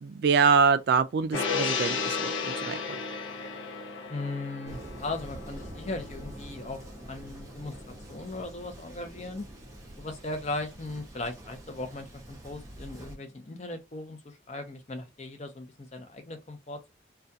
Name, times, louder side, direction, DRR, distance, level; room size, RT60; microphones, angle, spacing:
voice 1, 0.0-2.8, right 5 dB, 55° right, 0.3 m, -24 dB
Gong, 1.3-7.9 8.3-8.4, left 5 dB, 75° left, 0.6 m, -34 dB
voice 2, 4.1-7.8 8.1-9.4 10.0-16.9, left 2 dB, 35° left, 0.6 m, -38 dB
Thunder, 4.6-13.2, right 1 dB, 15° right, 0.6 m, -46 dB
2.4 x 2.3 x 2.6 m
head